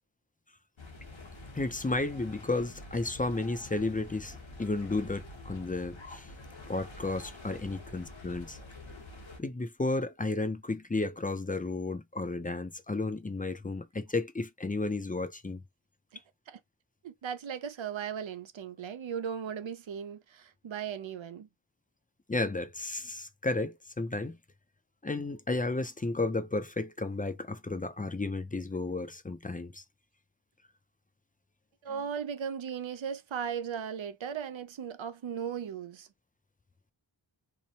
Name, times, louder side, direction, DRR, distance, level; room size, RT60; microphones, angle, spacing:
sound 1, 0.8-9.4, left 2 dB, 85° left, 1.0 m, -47 dB
voice 1, 1.5-6.3 6.7-8.6 9.4-15.6 22.3-24.4 25.0-29.8, left 2 dB, 20° left, 0.4 m, -33 dB
voice 2, 17.0-21.5 31.8-36.1, right 7 dB, 85° right, 0.5 m, -37 dB
2.8 x 2.1 x 2.7 m
wide cardioid pair, 40°, 45 cm